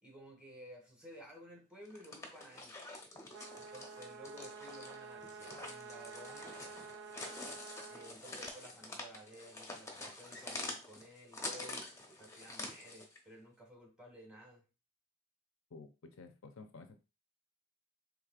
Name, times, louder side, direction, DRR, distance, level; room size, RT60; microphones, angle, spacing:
voice 1, 0.0-2.8 3.6-6.6 7.9-11.9 12.2-14.6, equal, 5° right, 0 dB, 1.4 m, -54 dB
sound 1, 1.8-13.2, left 2 dB, 15° left, 0.8 m, -47 dB
sound 2, 3.3-8.2, right 5 dB, 65° right, 0.4 m, -50 dB
voice 2, 15.7-17.0, left 3 dB, 75° left, 7 dB, 0.6 m, -52 dB
4.8 x 3.2 x 2.4 m, 0.30 s
head